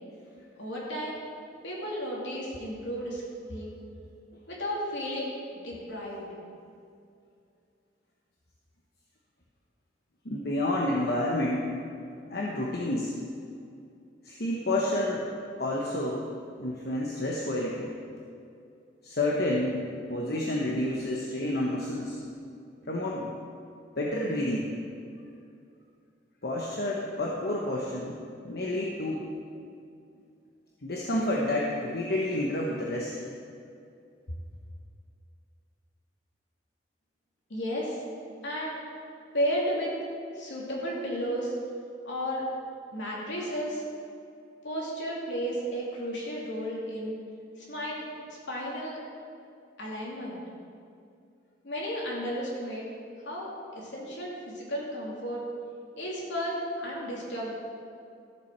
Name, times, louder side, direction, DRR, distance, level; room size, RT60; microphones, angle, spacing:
voice 1, 0.6-1.2 1.6-3.2 3.5-3.7 4.5-6.3 37.5-38.0 38.4-38.8 39.3-39.9 40.3-41.5 42.0-42.4 42.9-43.8 44.6-47.2 47.6-48.0 48.5-49.0 49.8-50.4 51.6-52.9 53.2-55.4 56.0-57.5, equal, 85° left, -4 dB, 2.7 m, -33 dB
voice 2, 10.2-11.7 12.3-13.2 14.2-15.3 15.6-16.3 16.6-17.9 19.0-22.2 22.9-23.3 24.0-24.7 26.4-28.2 28.4-29.3 30.8-33.1, left 1 dB, 60° left, -2 dB, 1.1 m, -29 dB
14.0 x 7.4 x 4.6 m, 2.5 s
head